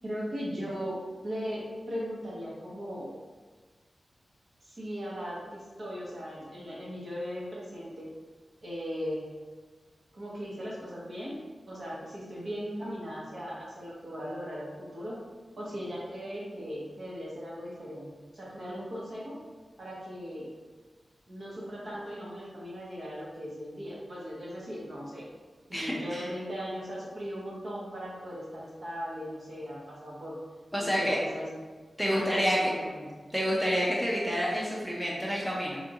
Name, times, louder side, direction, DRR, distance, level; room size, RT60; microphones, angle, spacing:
voice 1, 0.0-3.1 4.6-8.1 8.6-9.2 10.1-11.4 11.7-15.2 15.6-19.4 19.8-20.5 21.3-25.3 25.7-30.4 30.8-31.6 32.0-33.1, equal, 50° right, -6 dB, 1.2 m, -38 dB
voice 2, 25.7-26.3 30.7-31.2 32.0-32.7 33.3-35.8, equal, ahead, -4 dB, 0.6 m, -28 dB
4.4 x 3.7 x 2.5 m, 1.4 s
wide cardioid pair, 120°, 0 cm